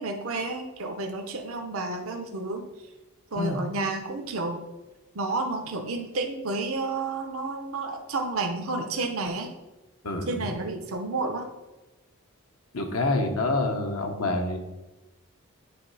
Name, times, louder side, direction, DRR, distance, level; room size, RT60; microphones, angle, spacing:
voice 1, 0.0-2.6 3.3-4.7 5.1-9.5 10.3-11.5, right 3 dB, 70° right, 3 dB, 0.8 m, -31 dB
voice 2, 10.0-10.5 12.7-14.6, left 2 dB, 75° left, 3 dB, 1.1 m, -27 dB
9.6 x 3.3 x 4.8 m, 1.1 s
head